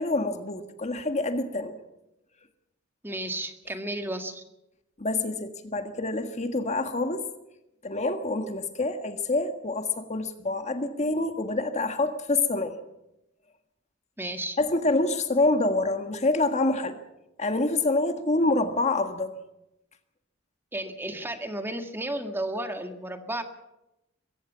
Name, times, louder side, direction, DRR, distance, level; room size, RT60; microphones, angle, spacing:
voice 1, 0.0-1.8 5.0-7.3 7.8-12.8 14.6-17.0 17.4-19.3, left 2 dB, 35° left, 7 dB, 1.6 m, -26 dB
voice 2, 3.0-4.4 14.2-14.6 20.7-23.4, right 1 dB, 10° right, 6 dB, 1.7 m, -33 dB
22.5 x 15.5 x 7.3 m, 0.89 s
head